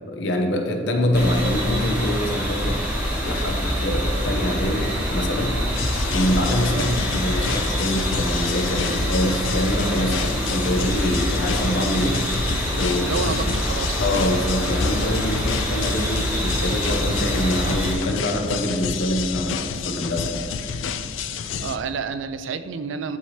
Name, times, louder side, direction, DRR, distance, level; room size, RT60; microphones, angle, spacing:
voice 1, 0.0-2.8 3.2-5.6 6.1-12.2 12.7-13.4 14.0-20.5, left 1 dB, 65° left, 3 dB, 0.8 m, -25 dB
sound 1, 1.1-17.9, equal, 10° right, 1.2 m, -25 dB
Heavy Retro Beat, 5.7-21.8, left 6 dB, 85° left, 0.4 m, -30 dB
voice 2, 13.0-14.5 21.2-23.2, right 5 dB, 75° right, 11 dB, 0.4 m, -30 dB
11.0 x 4.2 x 3.2 m, 2.2 s
head